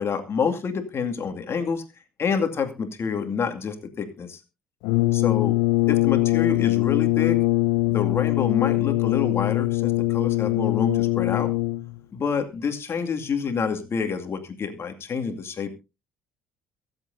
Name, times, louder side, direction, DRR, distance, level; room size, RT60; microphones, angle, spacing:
voice 1, 0.0-1.8 2.2-4.4 5.1-5.6 5.9-7.4 7.8-11.5 12.1-15.8, left 6 dB, 45° left, 6 dB, 2.4 m, -27 dB
Brass instrument, 4.8-12.0, left 19 dB, 75° left, 0.6 m, -22 dB
23.0 x 8.0 x 2.7 m, 0.27 s
hypercardioid pair, 60°, 6 cm